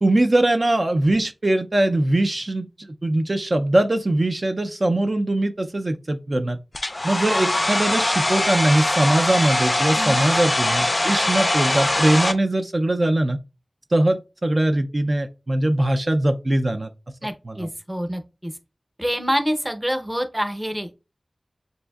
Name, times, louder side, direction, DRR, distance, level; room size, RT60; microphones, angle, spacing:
voice 1, 0.0-6.6 7.0-13.4 13.9-16.9 17.5-17.7, right 1 dB, 50° right, 0.4 m, -21 dB
Domestic sounds home sounds, 6.7-12.3, left 1 dB, 35° left, 0.3 m, -22 dB
voice 2, 10.0-10.3 17.2-18.5 19.0-20.9, equal, 10° right, 0.7 m, -26 dB
6.9 x 2.6 x 2.3 m
wide cardioid pair, 60°, 0 cm